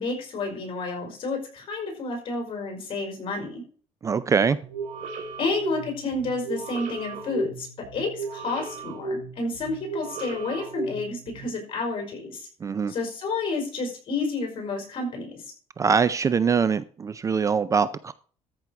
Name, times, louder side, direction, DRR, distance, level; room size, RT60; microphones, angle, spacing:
voice 1, 0.0-3.6 5.4-7.7 7.9-12.5 12.9-15.4, left 3 dB, 45° left, 2 dB, 5.1 m, -30 dB
voice 2, 4.0-4.6 12.6-12.9 15.8-18.1, right 6 dB, 25° right, 15 dB, 0.4 m, -23 dB
sound 1, 4.6-11.5, right 3 dB, 75° right, 3.6 m, -35 dB
13.5 x 6.2 x 4.6 m, 0.42 s
cardioid pair, 150°, 12 cm